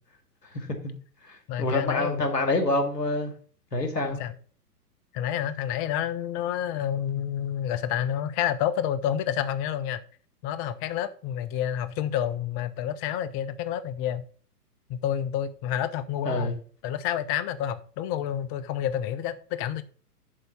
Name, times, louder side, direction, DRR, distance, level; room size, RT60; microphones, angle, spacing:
voice 1, 0.5-0.9 1.3-3.3 3.7-4.2 16.3-16.6, left 2 dB, 90° left, 2.3 m, -27 dB
voice 2, 1.5-2.3 4.2-4.3 5.1-10.0 10.4-14.2 14.9-19.8, left 10 dB, 20° left, 0.6 m, -29 dB
11.0 x 4.0 x 5.9 m
figure-of-eight pair, 120°, 47 cm